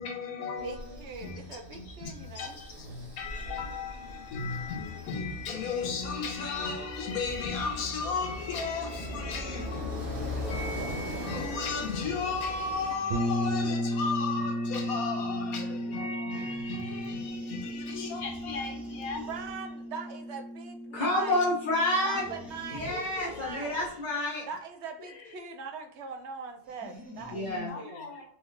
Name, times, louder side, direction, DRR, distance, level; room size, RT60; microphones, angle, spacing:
voice 1, 0.0-19.3 22.7-23.4 25.1-25.5 27.7-28.2, left 4 dB, 75° left, 1.2 m, -35 dB
sound 1, 0.6-13.0, left 1 dB, 40° right, 1.4 m, -40 dB
voice 2, 0.6-2.5 19.3-21.4 22.0-23.9 24.5-28.1, right 5 dB, 65° right, 0.7 m, -41 dB
sound 2, 12.2-14.1 16.3-20.0 22.1-24.4 26.6-27.7, left 1 dB, ahead, 0.8 m, -49 dB
sound 3, 13.1-22.8, equal, 85° right, 1.3 m, -34 dB
voice 3, 20.9-22.3 22.7-24.5 27.3-27.7, left 1 dB, 40° left, 0.7 m, -29 dB
3.6 x 3.2 x 3.2 m
omnidirectional pair, 1.5 m